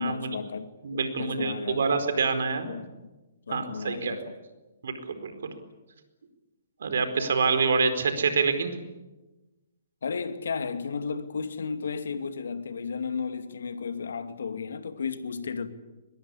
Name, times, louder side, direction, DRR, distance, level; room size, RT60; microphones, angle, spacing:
voice 1, 0.0-2.0 2.6-2.9 3.5-4.4 10.0-15.7, left 5 dB, 75° left, 2.5 m, -34 dB
voice 2, 0.8-2.7 3.5-4.2 4.8-5.5 6.8-8.7, right 5 dB, 70° right, 4.6 m, -26 dB
23.0 x 21.5 x 9.9 m
hypercardioid pair, 130°, 0 cm